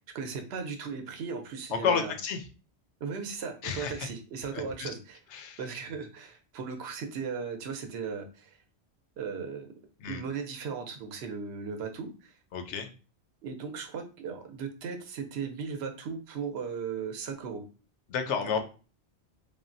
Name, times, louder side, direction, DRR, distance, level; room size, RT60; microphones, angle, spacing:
voice 1, 0.0-2.1 3.0-5.2 5.6-8.6 9.2-9.7 10.1-12.3 13.4-17.7 18.5-18.6, right 6 dB, 70° right, 6 dB, 0.8 m, -37 dB
voice 2, 1.7-2.4 3.6-4.1 4.5-4.9 5.3-5.6 10.0-10.2 12.5-12.9 18.1-18.6, left 6 dB, 90° left, 7 dB, 0.9 m, -31 dB
3.4 x 2.1 x 2.5 m, 0.34 s
omnidirectional pair, 1.1 m